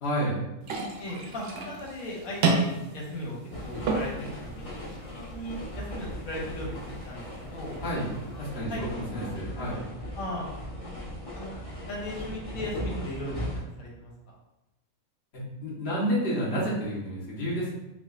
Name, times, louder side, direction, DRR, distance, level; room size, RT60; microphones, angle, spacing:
voice 1, 0.0-0.4 7.8-8.1 8.4-9.8 15.3-17.7, equal, 50° left, -6 dB, 1.2 m, -30 dB
sound 1, 0.6-8.6, right 3 dB, 60° right, 0.7 m, -33 dB
voice 2, 1.0-3.4 3.6-5.0 5.3-7.8 8.7-8.8 9.1-9.3 9.6-9.8 10.1-10.5 11.3-11.6 11.9-13.4 13.8-14.1, left 1 dB, 85° left, -3 dB, 1.3 m, -37 dB
sound 2, 3.5-13.6, equal, 35° left, 0.6 m, -38 dB
4.7 x 2.2 x 2.3 m, 0.95 s
omnidirectional pair, 1.4 m